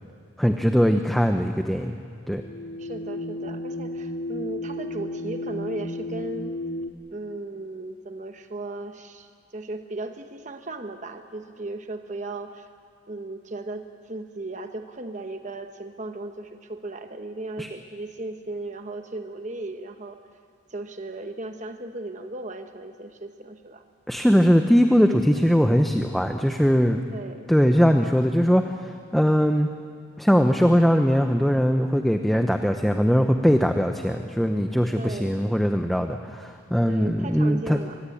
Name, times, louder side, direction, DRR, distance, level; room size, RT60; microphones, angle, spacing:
voice 1, 0.4-2.0 2.3-2.4 17.6-17.7 24.1-27.0 27.5-29.7 30.2-37.8, equal, ahead, 5 dB, 0.8 m, -21 dB
sound 1, 2.3-6.9, left 1 dB, 85° left, 2.1 m, -33 dB
voice 2, 2.8-6.6 7.1-12.7 13.1-20.2 20.7-23.8 27.1-27.5 34.9-35.4 36.9-38.0, right 2 dB, 40° right, 6 dB, 1.0 m, -36 dB
24.5 x 20.5 x 8.6 m, 2.1 s
head